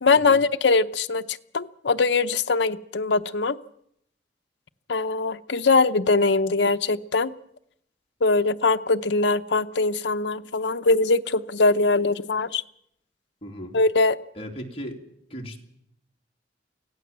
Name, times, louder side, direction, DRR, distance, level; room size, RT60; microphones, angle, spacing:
voice 1, 0.0-3.6 4.9-7.3 8.2-12.6 13.7-14.2, left 3 dB, 75° left, 9 dB, 0.8 m, -22 dB
voice 2, 13.4-13.7 14.3-15.0 15.3-15.6, equal, 35° left, 1 dB, 2.8 m, -36 dB
24.5 x 16.5 x 7.4 m, 0.72 s
head